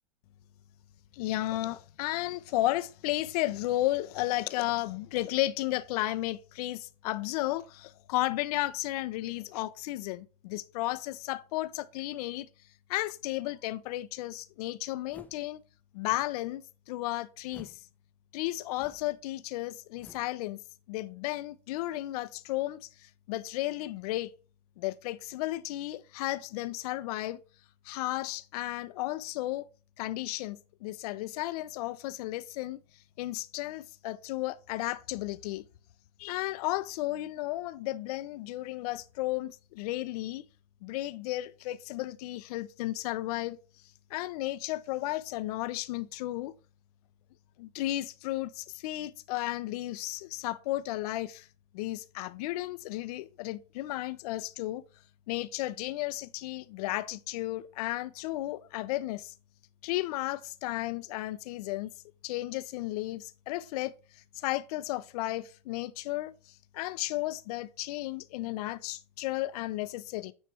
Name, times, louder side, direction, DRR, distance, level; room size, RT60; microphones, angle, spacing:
voice 1, 1.1-12.5 12.9-15.6 15.9-17.8 18.3-20.6 20.9-24.3 24.8-27.4 27.8-29.7 30.0-32.8 33.2-35.6 36.2-40.5 40.8-43.6 44.1-46.5 47.6-51.5 51.7-54.8 55.3-59.3 59.8-61.9 62.2-70.3, left 17 dB, 65° left, 0.7 m, -34 dB
sound 1, 15.1-15.5 16.0-16.4 17.5-17.9 18.7-19.2 20.0-20.4, left 3 dB, 10° left, 0.7 m, -54 dB
9.5 x 3.3 x 4.5 m
hypercardioid pair, 110°, 21 cm